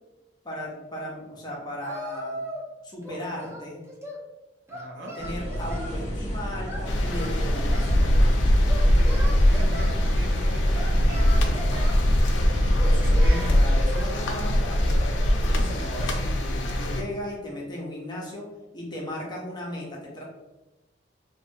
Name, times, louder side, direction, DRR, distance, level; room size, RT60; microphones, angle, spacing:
voice 1, 0.4-2.4 2.8-3.8 4.9-8.4 12.8-18.5 18.7-20.2, equal, 25° left, -3 dB, 0.6 m, -36 dB
Singing, 1.8-2.7 3.0-4.2 4.7-6.0 6.7-8.0 8.7-9.9 10.7-12.0 12.7-14.1, equal, 15° right, 0.5 m, -38 dB
voice 2, 4.7-5.1 8.9-11.3 12.2-13.6, right 1 dB, 65° right, 1 dB, 0.5 m, -42 dB
sound 1, 5.2-12.8, equal, 40° left, 1.0 m, -32 dB
sound 2, 6.9-17.0, equal, 85° left, 0.4 m, -21 dB
2.9 x 2.2 x 2.6 m, 1.0 s
head